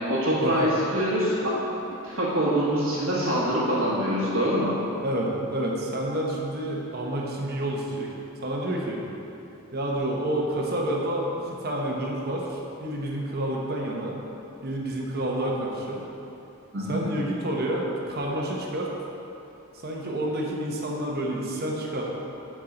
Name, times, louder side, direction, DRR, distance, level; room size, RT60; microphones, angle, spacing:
voice 1, 0.0-1.3 2.0-4.7 16.7-17.0, equal, 65° right, -9 dB, 1.4 m, -24 dB
voice 2, 5.0-8.1 8.4-9.0 9.7-14.1 14.6-16.0 16.9-18.9 19.8-22.0, right 1 dB, 45° right, -2 dB, 1.0 m, -29 dB
11.5 x 4.8 x 3.8 m, 2.9 s
head